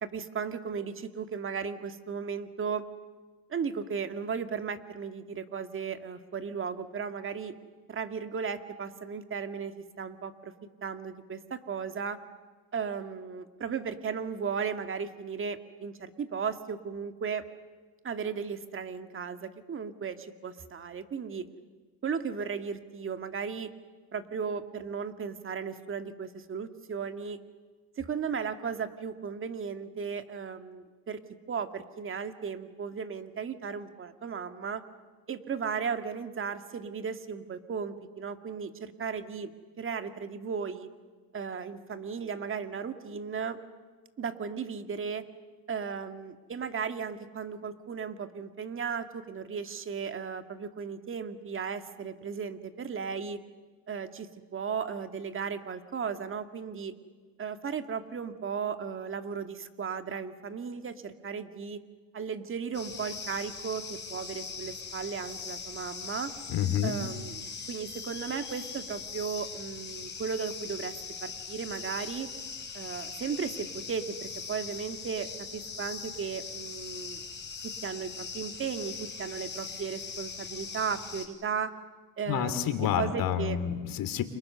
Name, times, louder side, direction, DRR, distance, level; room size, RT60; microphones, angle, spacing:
voice 1, 0.0-2.8 3.5-7.5 7.9-10.5 10.8-12.2 12.7-17.4 18.0-21.5 22.0-23.7 24.1-27.4 28.0-31.2 31.5-34.8 35.3-39.5 39.8-40.9 41.3-43.6 44.2-45.2 45.7-53.4 53.9-56.9 57.4-61.8 62.1-66.3 66.8-70.9 71.2-72.3 72.7-77.2 77.6-81.7 82.2-83.6, right 6 dB, 30° right, 8 dB, 2.0 m, -35 dB
sound 1, 62.7-81.3, left 5 dB, 25° left, 4.8 m, -41 dB
voice 2, 66.5-67.0 82.3-84.2, left 9 dB, 50° left, 10 dB, 3.0 m, -29 dB
29.5 x 27.5 x 6.8 m, 1.4 s
supercardioid pair, 105°, 43 cm